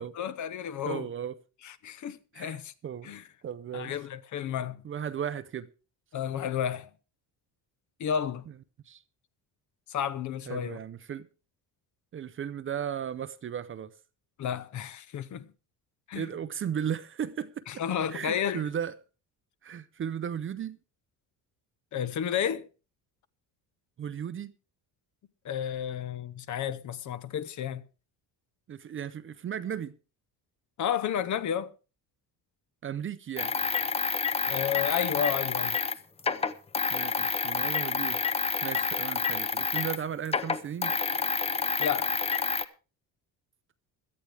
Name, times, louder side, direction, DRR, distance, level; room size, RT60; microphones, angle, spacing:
voice 1, 0.0-1.1 1.6-2.7 3.0-3.2 3.7-4.8 6.1-6.9 8.0-8.4 9.9-10.8 14.4-15.5 16.1-16.3 17.7-18.6 21.9-22.7 25.4-27.8 30.8-31.7 34.5-35.8 41.8-42.1, left 8 dB, 45° left, 0.9 m, -32 dB
voice 2, 0.8-1.3 2.3-3.1 3.4-3.9 4.8-5.7 8.9-9.0 10.5-11.3 12.1-13.9 16.1-17.8 18.1-18.9 19.6-20.8 24.0-24.5 28.7-29.9 32.8-33.5 36.9-38.3 38.6-40.9, right 8 dB, 30° right, 0.6 m, -35 dB
sound 1, 33.4-40.0 40.3-42.7, left 5 dB, 15° left, 0.6 m, -29 dB
17.5 x 13.0 x 3.4 m
cardioid pair, 165°, 40 cm